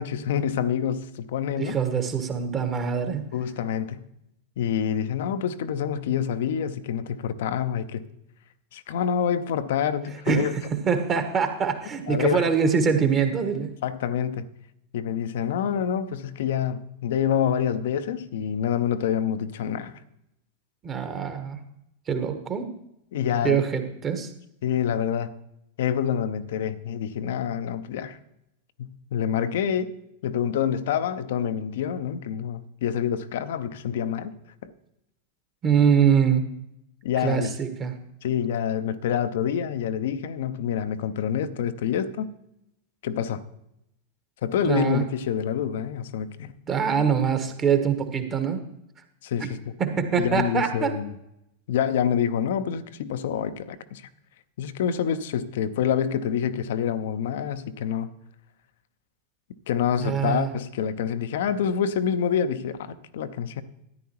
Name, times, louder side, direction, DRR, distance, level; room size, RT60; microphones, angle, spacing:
voice 1, 0.0-1.8 3.3-4.1 4.6-8.0 8.7-10.5 12.1-12.5 13.8-14.5 14.9-20.0 23.1-23.6 24.6-25.3 25.8-28.2 28.8-29.9 30.2-34.3 34.6-34.7 37.0-37.5 38.2-42.3 43.0-43.4 44.4-46.6 49.2-49.6 50.2-51.2 51.7-54.1 54.6-58.1 59.7-63.6, left 8 dB, 55° left, 0.6 m, -27 dB
voice 2, 1.6-3.3 10.3-13.7 20.8-21.6 22.1-22.7 23.4-24.3 35.6-36.4 37.2-37.9 44.6-45.0 46.7-48.6 49.4-49.5 49.8-50.9 60.0-60.5, right 7 dB, 25° right, 1.3 m, -24 dB
13.5 x 9.9 x 3.0 m
figure-of-eight pair, 90°, 0 cm